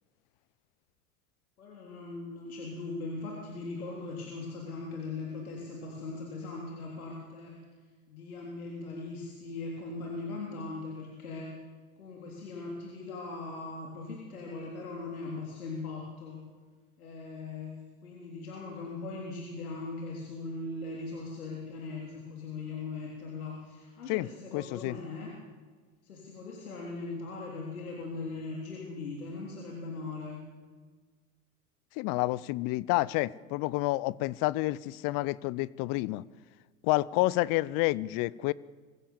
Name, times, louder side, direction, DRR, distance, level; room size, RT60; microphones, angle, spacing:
voice 1, 1.6-7.6 8.1-11.6 12.0-16.4 17.0-17.8 18.0-25.3 26.0-30.4, left 3 dB, 85° left, 3.8 m, -39 dB
voice 2, 24.5-25.0 32.0-36.2 36.8-38.5, left 19 dB, 50° left, 0.7 m, -29 dB
23.0 x 15.5 x 7.2 m
hypercardioid pair, 90°, 42 cm